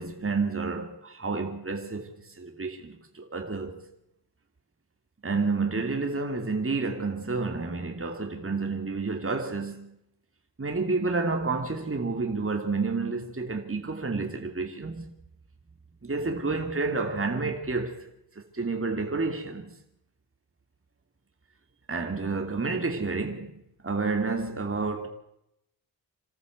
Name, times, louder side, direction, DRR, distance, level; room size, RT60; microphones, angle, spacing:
voice 1, 0.0-3.8 5.2-9.9 10.6-15.1 16.0-18.1 18.3-19.7 21.9-23.5 23.8-25.1, right 3 dB, 35° right, 2.8 m, -30 dB
27.0 x 13.5 x 8.1 m
supercardioid pair, 40°, 40 cm